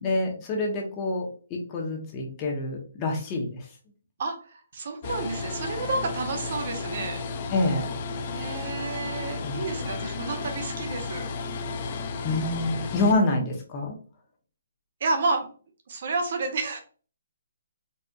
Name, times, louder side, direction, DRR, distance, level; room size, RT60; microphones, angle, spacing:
voice 1, 0.0-1.3 1.7-3.6 7.5-7.9 9.4-9.6 12.2-13.9, left 2 dB, 25° left, 0 dB, 0.8 m, -27 dB
voice 2, 4.2-7.2 8.3-11.3 15.0-15.5 15.9-16.8, right 3 dB, 55° right, 5 dB, 0.8 m, -30 dB
sound 1, 5.0-13.1, left 4 dB, 40° left, 0.4 m, -33 dB
4.1 x 2.5 x 2.3 m, 0.40 s
hypercardioid pair, 145°, 0 cm